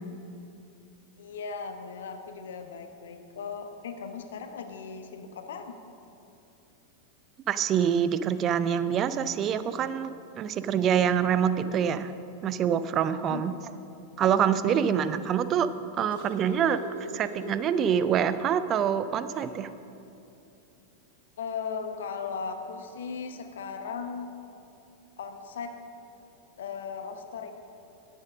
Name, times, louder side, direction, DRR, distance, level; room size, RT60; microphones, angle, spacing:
voice 1, 1.2-5.8 13.3-13.5 14.6-15.2 21.4-24.3 25.2-25.9 26.6-27.5, left 5 dB, 60° left, 7 dB, 0.8 m, -37 dB
voice 2, 7.5-12.1 12.4-13.5 14.2-15.7 15.9-19.7, right 8 dB, 30° right, 13 dB, 0.4 m, -26 dB
sound 1, 15.8-18.4 18.8-18.9 19.3-19.5 20.7-20.8, left 1 dB, 90° left, 2.5 m, -41 dB
9.7 x 7.3 x 6.3 m, 2.7 s
figure-of-eight pair, 90°, 0 cm